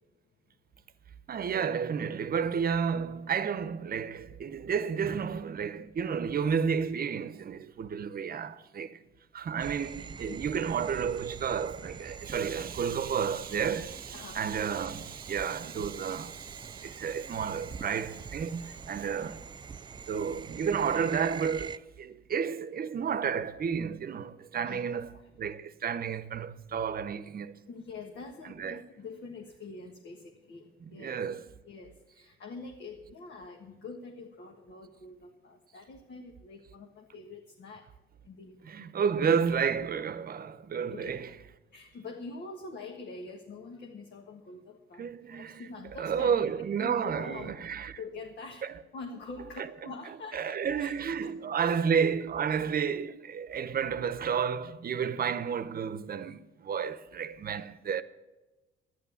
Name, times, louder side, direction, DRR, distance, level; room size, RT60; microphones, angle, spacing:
voice 1, 1.3-9.0 9.3-19.4 20.1-27.7 28.6-28.8 30.8-31.4 38.6-41.3 45.0-45.7 46.0-48.0 49.8-49.9 50.3-58.0, right 7 dB, 50° right, 0.8 m, -31 dB
sound 1, 9.6-21.8, right 6 dB, 25° right, 0.3 m, -45 dB
voice 2, 14.1-14.4 24.6-25.3 27.7-31.2 31.6-37.9 38.2-38.9 40.9-41.2 41.7-46.5 46.8-47.6 48.0-48.7 48.9-50.9 51.2-51.8, left 3 dB, 60° left, 1.5 m, -45 dB
11.0 x 9.8 x 7.0 m
cardioid pair, 90°, 20 cm